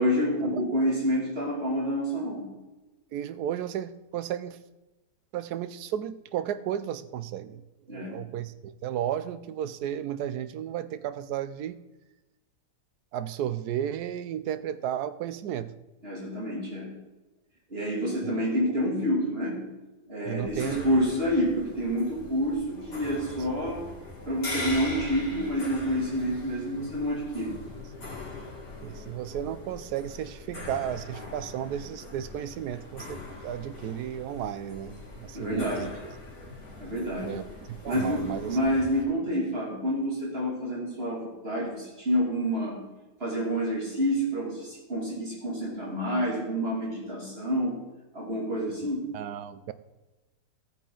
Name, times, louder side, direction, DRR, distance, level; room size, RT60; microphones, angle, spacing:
voice 1, 0.0-2.5 7.9-8.1 16.0-16.9 17.7-19.6 20.1-23.9 24.3-27.6 35.3-35.9 36.8-37.3 37.9-42.8 43.2-47.8 48.1-49.1, equal, 35° right, -3 dB, 3.0 m, -28 dB
voice 2, 3.1-4.6 5.3-11.8 13.1-15.7 18.2-18.3 20.3-20.8 28.8-36.1 37.2-38.6 49.1-49.7, right 10 dB, 70° right, 13 dB, 1.1 m, -34 dB
sound 1, 20.4-39.0, left 2 dB, 55° left, 3.0 m, -41 dB
13.5 x 9.2 x 3.9 m, 1.1 s
omnidirectional pair, 1.8 m